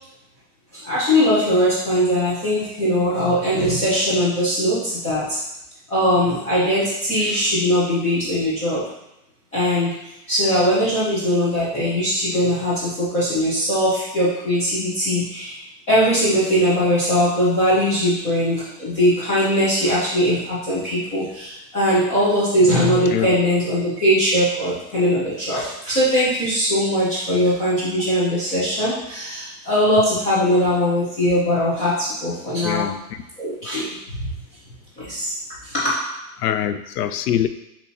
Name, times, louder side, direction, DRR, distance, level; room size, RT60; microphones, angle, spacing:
voice 1, 0.7-5.4 5.9-8.8 9.5-15.6 15.9-32.9 33.4-33.9 35.0-35.3 35.6-36.2, equal, 15° left, -10 dB, 0.8 m, -20 dB
voice 2, 32.6-33.2 36.4-37.5, left 10 dB, 90° left, 11 dB, 0.6 m, -24 dB
6.1 x 2.9 x 2.8 m, 0.88 s
supercardioid pair, 175°, 45 cm